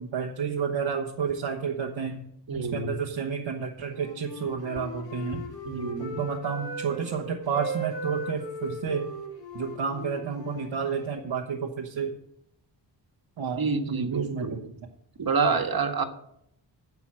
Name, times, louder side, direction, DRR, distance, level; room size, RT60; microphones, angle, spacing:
voice 1, 0.0-2.2 2.6-5.4 6.0-9.1 9.5-12.1 13.4-14.7, right 6 dB, 85° right, 1 dB, 1.3 m, -30 dB
voice 2, 2.5-3.0 5.6-6.2 13.6-14.6 15.2-16.0, right 4 dB, 50° right, 6 dB, 1.5 m, -28 dB
Wind instrument woodwind instrument, 3.8-7.1 7.4-11.2, equal, 80° left, 3.9 m, -38 dB
11.0 x 6.9 x 7.5 m, 0.72 s
cardioid pair, 75°, 44 cm